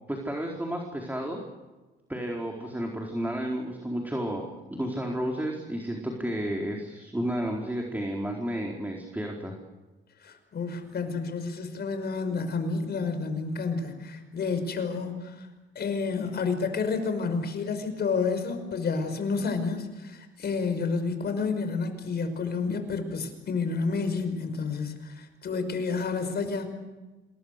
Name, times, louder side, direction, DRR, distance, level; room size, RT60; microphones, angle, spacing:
voice 1, 0.1-1.4 2.1-9.6, right 1 dB, 10° right, 1 dB, 4.3 m, -32 dB
voice 2, 10.2-15.5 15.8-26.7, left 4 dB, 55° left, 8 dB, 5.5 m, -30 dB
27.0 x 22.0 x 6.8 m, 1.2 s
cardioid pair, 90°, 20 cm